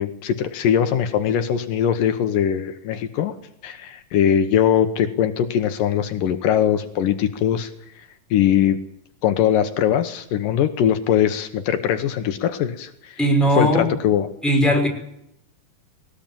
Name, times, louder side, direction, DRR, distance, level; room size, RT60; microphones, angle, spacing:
voice 1, 0.0-3.3 3.6-7.7 8.0-8.8 9.2-13.2 13.6-14.3, left 9 dB, 80° left, 8 dB, 2.8 m, -21 dB
voice 2, 13.2-13.9 14.4-14.9, equal, ahead, 0 dB, 5.4 m, -18 dB
20.5 x 19.0 x 9.0 m, 0.77 s
omnidirectional pair, 3.9 m